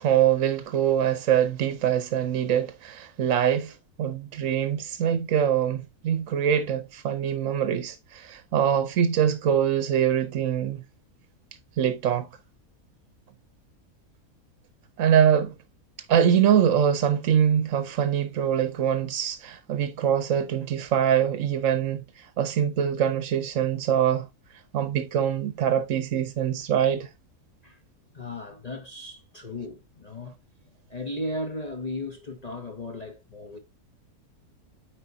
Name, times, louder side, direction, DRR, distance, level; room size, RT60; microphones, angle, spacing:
voice 1, 0.0-10.8 11.8-12.3 15.0-15.5 16.1-24.3 24.7-27.1, right 9 dB, 65° right, 1.0 m, -24 dB
voice 2, 28.1-33.6, left 1 dB, 30° left, 0.9 m, -36 dB
8.8 x 4.9 x 2.7 m
omnidirectional pair, 1.5 m